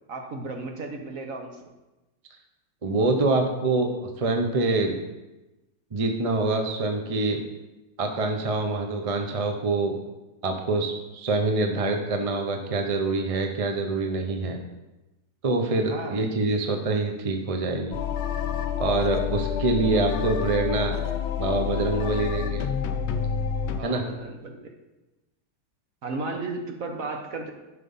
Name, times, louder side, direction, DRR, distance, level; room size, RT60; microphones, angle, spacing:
voice 1, 0.1-1.6 15.9-16.2 19.6-19.7 23.8-24.7 26.0-27.5, right 3 dB, 55° right, 3 dB, 1.5 m, -34 dB
voice 2, 2.8-5.0 5.9-7.4 8.0-9.9 10.4-14.6 15.4-18.0 18.8-21.0 21.4-22.6 23.8-24.0, right 3 dB, 30° right, 4 dB, 0.7 m, -25 dB
sound 1, 17.9-23.8, left 8 dB, 60° left, 0.7 m, -28 dB
11.5 x 5.8 x 5.5 m, 1.0 s
omnidirectional pair, 1.9 m